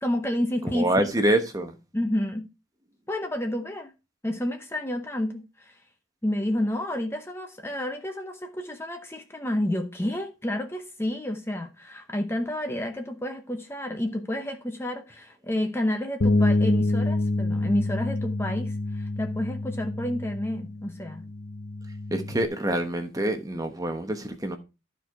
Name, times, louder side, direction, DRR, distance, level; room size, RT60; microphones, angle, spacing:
voice 1, 0.0-1.1 1.9-2.5 3.1-3.9 4.2-5.8 6.2-21.3, left 1 dB, 10° left, 0.8 m, -30 dB
voice 2, 0.7-1.7 22.1-24.6, right 1 dB, 20° right, 1.0 m, -26 dB
Bass guitar, 16.2-22.5, left 2 dB, 65° left, 0.7 m, -27 dB
12.5 x 4.7 x 4.7 m
head